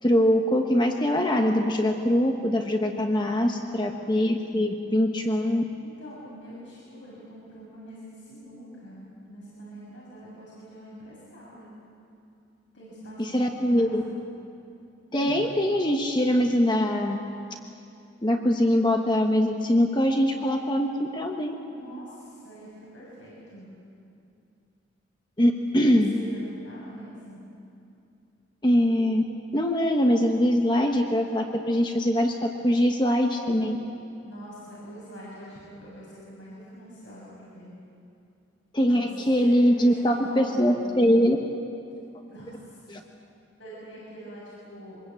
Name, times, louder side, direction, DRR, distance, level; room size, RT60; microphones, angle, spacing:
voice 1, 0.0-5.6 13.2-14.0 15.1-17.2 18.2-21.5 25.4-26.1 28.6-29.2 29.5-33.8 38.7-41.4 42.9-43.0, equal, 25° left, 3 dB, 1.2 m, -23 dB
voice 2, 3.2-3.9 5.8-11.7 12.7-14.2 21.7-23.7 25.9-27.4 34.2-37.7 38.9-41.1 42.3-42.8 43.6-45.1, right 1 dB, 75° left, -7 dB, 7.0 m, -45 dB
25.0 x 21.0 x 8.5 m, 2.6 s
head